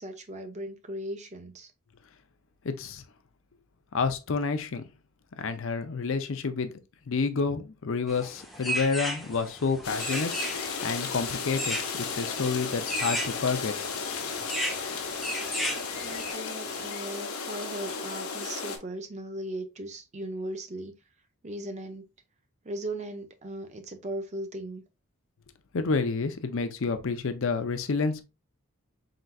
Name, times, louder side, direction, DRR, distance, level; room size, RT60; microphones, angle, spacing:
voice 1, 0.0-1.7 15.8-20.9 21.4-22.1 22.6-24.8, right 1 dB, 30° right, 0.6 m, -38 dB
voice 2, 2.6-3.0 3.9-4.8 5.4-6.7 7.1-10.3 10.8-13.7 25.7-28.2, left 4 dB, 60° left, 0.5 m, -29 dB
sound 1, 8.1-16.3, equal, ahead, 0.8 m, -35 dB
sound 2, 9.8-18.8, left 5 dB, 80° left, 0.9 m, -34 dB
4.3 x 3.8 x 2.3 m
head